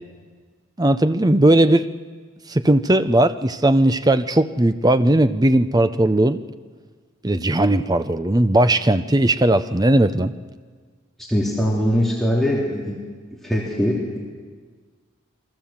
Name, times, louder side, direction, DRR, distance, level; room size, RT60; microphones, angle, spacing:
voice 1, 0.8-1.9 2.5-6.4 7.2-10.3, right 1 dB, 20° right, 0.6 m, -17 dB
voice 2, 11.2-12.9 13.4-14.2, equal, ahead, 2.9 m, -21 dB
28.0 x 22.5 x 7.3 m
head